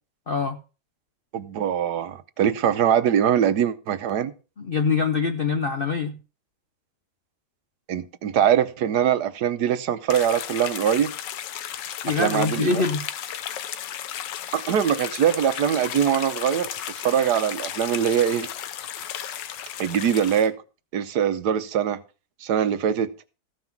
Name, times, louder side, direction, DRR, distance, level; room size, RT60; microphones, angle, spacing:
voice 1, 0.3-0.6 4.6-6.2 12.0-13.0, left 5 dB, 55° left, 0.6 m, -24 dB
voice 2, 1.3-4.3 7.9-11.1 12.2-12.8 14.5-18.5 19.8-20.5 20.9-22.0 22.4-23.1, right 9 dB, 70° right, 1.3 m, -22 dB
sound 1, 10.1-20.5, left 10 dB, 85° left, 1.5 m, -34 dB
15.0 x 5.9 x 5.9 m
omnidirectional pair, 1.9 m